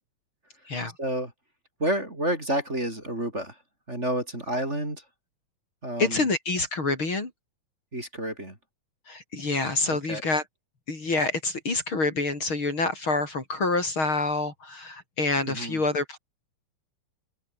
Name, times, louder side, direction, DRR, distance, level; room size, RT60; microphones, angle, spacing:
voice 1, 1.0-1.3 1.8-3.6 3.9-5.0 5.8-6.3 7.9-8.6 9.8-10.2 15.5-15.8, right 1 dB, 20° right, 5.3 m, -30 dB
voice 2, 6.0-7.3 9.1-10.4 10.9-16.2, left 3 dB, 45° left, 5.0 m, -27 dB
open air
omnidirectional pair, 3.3 m